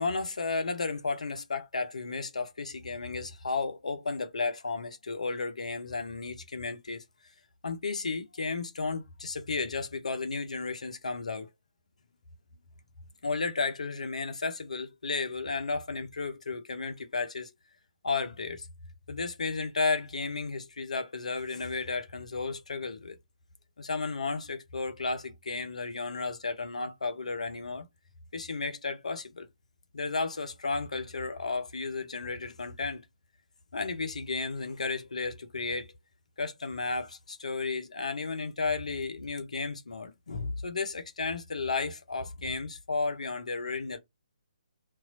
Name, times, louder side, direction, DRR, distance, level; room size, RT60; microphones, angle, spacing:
voice 1, 0.0-7.0 7.6-11.5 13.2-17.5 18.0-18.7 19.1-23.2 23.8-27.8 28.3-29.5 29.9-33.0 33.7-35.9 36.4-44.0, left 4 dB, 60° left, 0.6 m, -33 dB
2.9 x 2.3 x 3.7 m
figure-of-eight pair, 135°, 4 cm